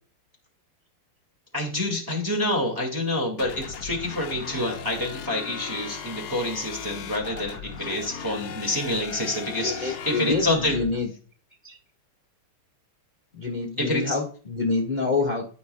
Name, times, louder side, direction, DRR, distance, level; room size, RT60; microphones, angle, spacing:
voice 1, 1.5-10.8 13.8-14.2, left 1 dB, 10° right, 0 dB, 1.6 m, -27 dB
sound 1, 3.4-10.9, left 7 dB, 70° left, 1.6 m, -38 dB
voice 2, 7.2-7.6 9.6-11.1 11.6-11.8 13.4-15.5, left 3 dB, 25° left, -1 dB, 1.4 m, -27 dB
13.0 x 5.3 x 2.2 m, 0.41 s
omnidirectional pair, 2.4 m